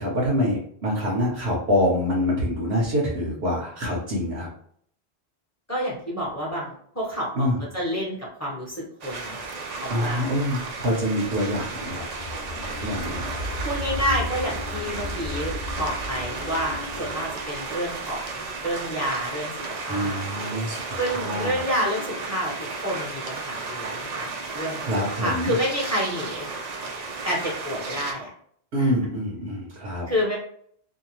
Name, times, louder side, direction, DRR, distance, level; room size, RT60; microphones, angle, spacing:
voice 1, 0.0-4.5 7.3-7.6 9.9-12.0 12.8-13.3 19.9-21.6 24.8-25.6 28.7-30.0, equal, 70° right, -4 dB, 1.0 m, -25 dB
voice 2, 5.7-9.4 9.8-10.3 13.6-20.2 21.0-22.5 22.8-24.8 25.2-26.5 27.2-28.3 28.8-28.9 30.1-30.4, equal, 15° left, -4 dB, 0.8 m, -29 dB
sound 1, 9.0-28.1, right 4 dB, 55° right, 0.5 m, -34 dB
sound 2, 10.8-19.0, left 2 dB, 45° left, 0.5 m, -35 dB
2.7 x 2.2 x 2.9 m, 0.62 s
omnidirectional pair, 1.1 m